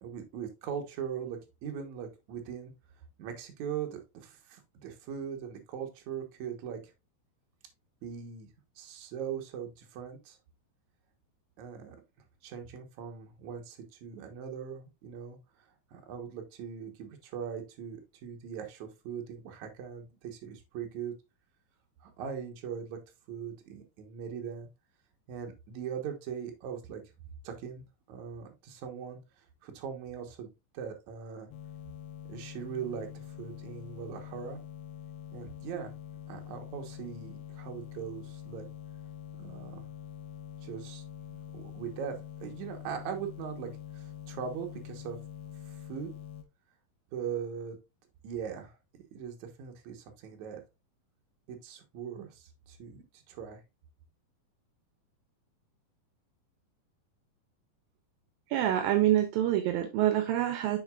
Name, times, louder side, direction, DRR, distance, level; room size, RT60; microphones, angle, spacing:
voice 1, 0.0-2.7 3.2-6.9 8.0-8.5 8.8-10.4 11.6-12.0 12.4-21.1 22.0-23.0 23.3-24.7 25.3-27.0 27.4-30.5 30.7-31.5 32.3-34.6 35.3-35.9 36.3-38.7 39.4-39.9 40.6-41.0 41.3-45.2 45.7-46.1 47.1-47.8 48.2-48.8 49.1-50.6 51.5-53.6, right 8 dB, 60° right, 2.3 m, -40 dB
sound 1, 31.5-46.4, left 10 dB, 70° left, 2.1 m, -45 dB
voice 2, 58.5-60.8, right 12 dB, 80° right, 2.4 m, -26 dB
7.7 x 5.9 x 2.4 m
omnidirectional pair, 4.2 m